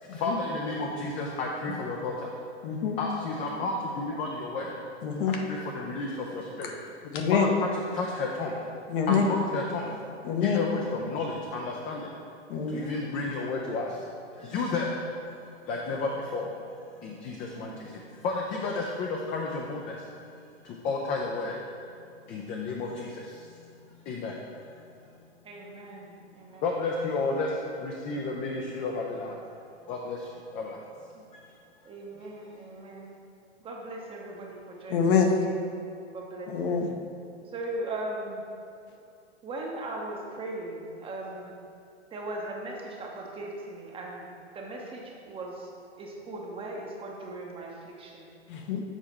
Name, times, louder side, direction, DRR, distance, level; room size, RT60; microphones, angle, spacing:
voice 1, 0.0-2.3 3.0-4.7 5.5-6.8 7.3-8.6 9.1-12.1 12.7-16.5 17.0-20.1 20.6-21.7 22.2-23.8 24.0-25.1 26.6-29.4 29.9-30.8, left 3 dB, 20° left, -1 dB, 0.5 m, -32 dB
voice 2, 2.6-3.0 5.0-5.4 7.1-7.5 8.9-9.2 10.2-10.6 12.5-12.7 34.9-35.4 36.5-36.9 48.5-48.8, left 6 dB, 50° left, 3 dB, 0.9 m, -25 dB
voice 3, 3.3-3.9 9.8-10.0 10.6-11.1 12.5-13.1 14.5-14.9 17.3-17.9 25.4-26.6 31.1-31.2 31.8-33.1 33.6-35.5 36.1-36.7 37.5-38.4 39.4-41.5 42.1-44.3 44.5-45.7 46.0-48.3, right 2 dB, 15° right, -1 dB, 0.8 m, -39 dB
7.3 x 4.7 x 4.3 m, 2.5 s
hypercardioid pair, 125°, 35 cm